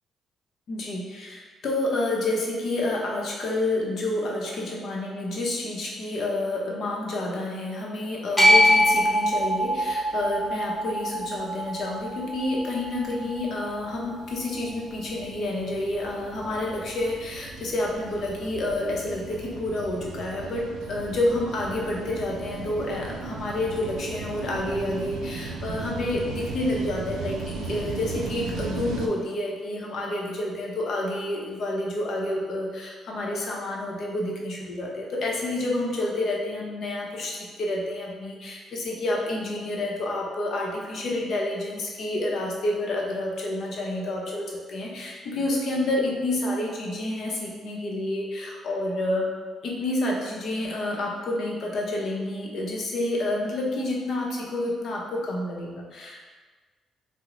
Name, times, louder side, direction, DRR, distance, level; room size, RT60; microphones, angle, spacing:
voice 1, 0.7-27.4 27.6-49.3 49.6-56.3, left 1 dB, 60° left, -2 dB, 0.7 m, -29 dB
sound 1, 8.4-14.6, equal, 15° left, 1.1 m, -24 dB
sound 2, 11.3-29.1, right 4 dB, 85° right, 0.3 m, -37 dB
2.9 x 2.0 x 3.7 m, 1.4 s
cardioid pair, 90°, 0 cm